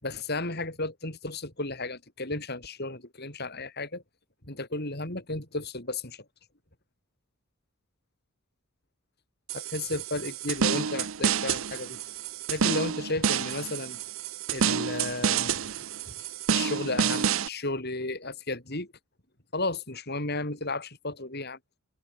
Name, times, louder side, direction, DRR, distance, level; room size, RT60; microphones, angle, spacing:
voice 1, 0.0-4.0 4.4-6.2 9.5-12.0 12.5-14.0 14.5-15.6 16.5-18.9 19.5-21.6, left 2 dB, 45° left, 5.6 m, -33 dB
sound 1, 9.5-17.5, right 7 dB, 65° right, 0.7 m, -29 dB
open air
head